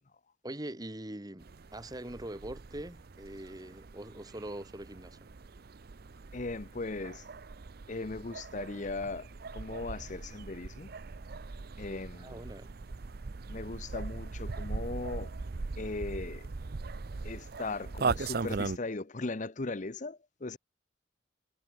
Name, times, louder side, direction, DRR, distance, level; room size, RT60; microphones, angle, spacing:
voice 1, 0.4-5.3 12.2-12.7, right 1 dB, 20° right, 1.8 m, -43 dB
sound 1, 1.4-18.8, right 4 dB, 55° right, 0.6 m, -40 dB
voice 2, 6.3-7.3 7.9-10.9 11.8-12.4 13.5-15.3 15.8-16.5 17.2-20.6, left 3 dB, 40° left, 0.8 m, -38 dB
head